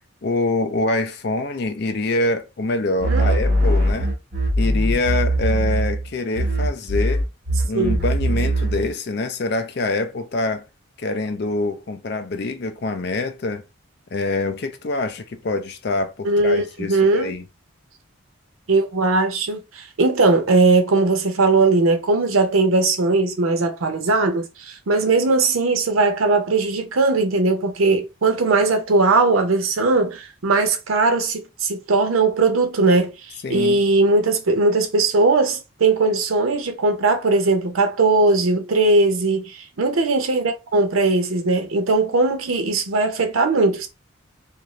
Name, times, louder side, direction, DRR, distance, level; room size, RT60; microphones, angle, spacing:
voice 1, 0.2-4.1 4.6-7.2 7.6-10.6 11.0-13.6 14.1-17.4 33.4-33.8, left 2 dB, 50° left, 0.5 m, -25 dB
sound 1, 3.0-6.1 6.3-8.9, right 1 dB, 50° right, 1.2 m, -21 dB
voice 2, 3.1-3.7 7.7-8.0 16.2-17.3 18.7-43.9, right 3 dB, 90° right, 0.7 m, -19 dB
2.6 x 2.3 x 3.0 m
head